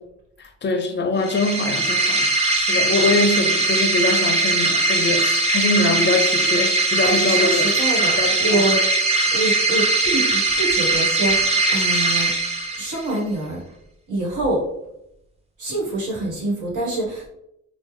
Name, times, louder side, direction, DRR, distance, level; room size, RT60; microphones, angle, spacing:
voice 1, 0.4-2.3 2.6-7.7 8.2-8.7, left 2 dB, 35° left, 6 dB, 0.5 m, -23 dB
sound 1, 1.2-13.1, right 2 dB, 20° right, 0.7 m, -20 dB
voice 2, 7.0-8.8 9.3-12.3 12.8-13.6 14.1-14.6 15.6-17.3, right 2 dB, 75° right, -4 dB, 1.4 m, -25 dB
3.2 x 2.0 x 3.2 m, 0.81 s
cardioid pair, 75°, 31 cm